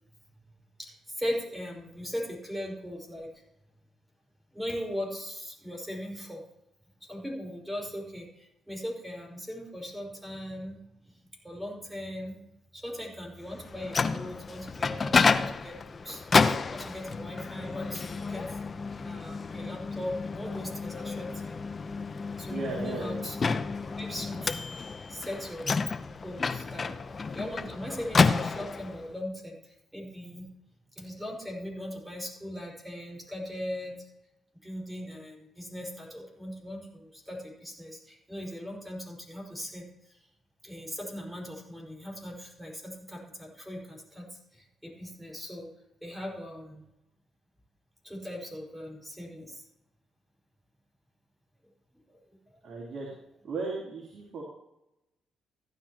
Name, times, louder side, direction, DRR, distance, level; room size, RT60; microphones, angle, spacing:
voice 1, 0.8-3.4 4.5-6.4 7.1-10.8 11.4-12.4 12.7-15.8 16.0-18.6 19.0-21.6 22.4-23.4 24.0-24.8 25.1-25.8 26.1-26.9 27.3-30.5 30.9-34.1 34.6-40.2 40.6-45.7 46.0-46.8 48.0-49.6 52.1-52.2 52.5-52.6, equal, 5° right, -1 dB, 5.1 m, -39 dB
Microwave oven, 13.6-29.0, left 4 dB, 35° left, 0.7 m, -30 dB
voice 2, 22.5-23.2 52.6-53.1 53.4-54.4, right 3 dB, 60° right, -4 dB, 3.3 m, -35 dB
15.0 x 12.0 x 3.0 m, 0.85 s
cardioid pair, 90°, 0 cm